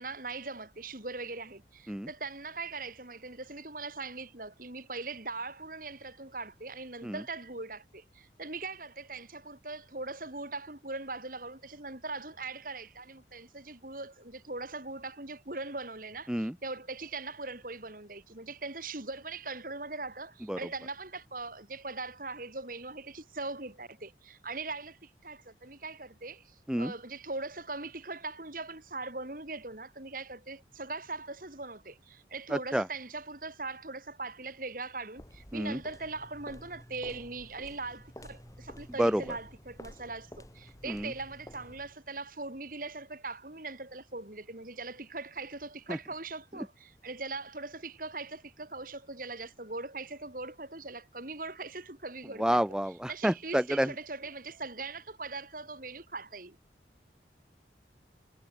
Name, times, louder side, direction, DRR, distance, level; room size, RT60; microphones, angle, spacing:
voice 1, 0.0-52.6 53.1-56.6, right 3 dB, 50° right, 3.5 m, -40 dB
voice 2, 32.5-32.9 35.5-35.8 39.0-39.2 40.9-41.1 45.9-46.0 52.4-53.9, equal, 5° right, 0.4 m, -29 dB
sound 1, 35.2-42.0, equal, 20° left, 5.0 m, -51 dB
head